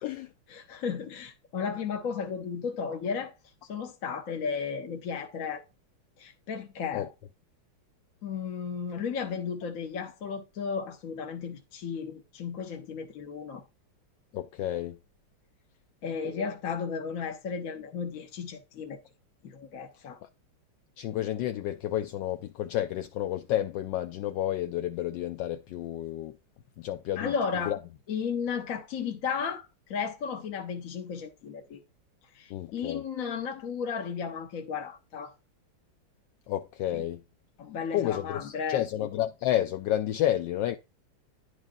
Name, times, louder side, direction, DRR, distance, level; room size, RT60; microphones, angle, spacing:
voice 1, 0.5-3.3 3.7-5.6 6.2-7.1 8.2-13.6 16.0-19.0 19.4-20.2 27.2-27.8 28.1-31.8 32.3-35.3 36.9-37.0 37.6-38.8, left 6 dB, 50° left, 1.1 m, -34 dB
voice 2, 14.3-15.0 21.0-26.4 26.8-27.3 27.7-27.8 32.5-33.0 36.5-37.2 37.9-40.8, left 12 dB, 75° left, 1.1 m, -30 dB
10.5 x 4.9 x 2.6 m
omnidirectional pair, 2.4 m